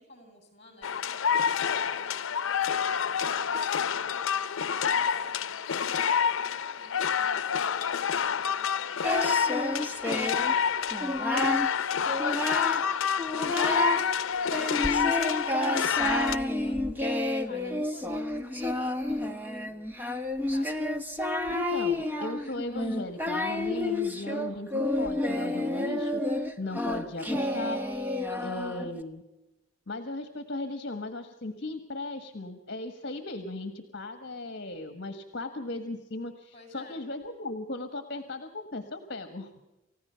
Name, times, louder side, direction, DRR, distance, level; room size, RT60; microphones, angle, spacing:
voice 1, 0.0-4.5 4.9-9.0 9.7-11.2 11.9-16.8 17.3-19.8 20.5-20.8 24.0-24.5 28.3-28.6 36.5-37.1, left 1 dB, 30° left, 5 dB, 7.1 m, -52 dB
sound 1, 0.8-16.4, left 7 dB, 90° left, 0.6 m, -28 dB
Singing, 9.0-10.5 10.9-11.7 12.1-12.9 13.2-14.1 14.5-29.0, left 1 dB, 10° right, 1.2 m, -30 dB
voice 2, 21.5-27.8 28.4-29.2 29.9-39.5, left 2 dB, 55° left, 8 dB, 1.5 m, -37 dB
29.0 x 15.5 x 5.7 m, 1.0 s
head